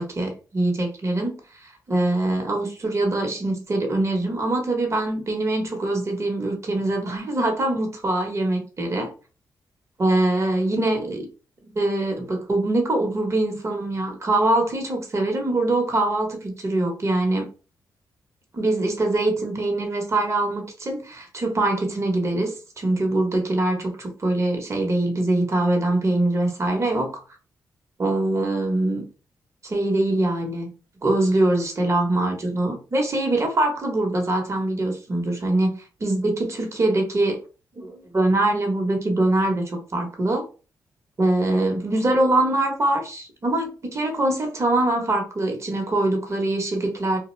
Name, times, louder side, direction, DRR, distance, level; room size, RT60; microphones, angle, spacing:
voice 1, 0.0-1.4 1.6-9.1 10.0-11.3 11.7-17.5 18.5-27.2 28.0-29.0 29.6-30.7 31.0-37.4 37.8-40.4 41.2-47.2, right 2 dB, 40° right, 2 dB, 0.8 m, -23 dB
2.3 x 2.1 x 3.0 m, 0.35 s
cardioid pair, 65°, 8 cm